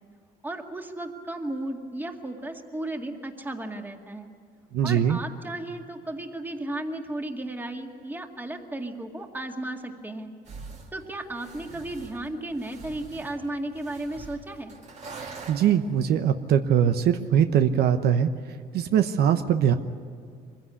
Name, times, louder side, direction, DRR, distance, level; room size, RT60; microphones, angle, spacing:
voice 1, 0.4-4.3 4.8-10.3 10.9-14.7, right 1 dB, 10° right, 3 dB, 2.1 m, -34 dB
voice 2, 4.7-5.2 15.2-18.3 18.7-19.7, right 9 dB, 70° right, 8 dB, 1.0 m, -22 dB
sound 1, 10.4-16.1, right 4 dB, 40° right, 2.4 m, -44 dB
23.5 x 16.0 x 9.8 m, 2.2 s
cardioid pair, 110°, 17 cm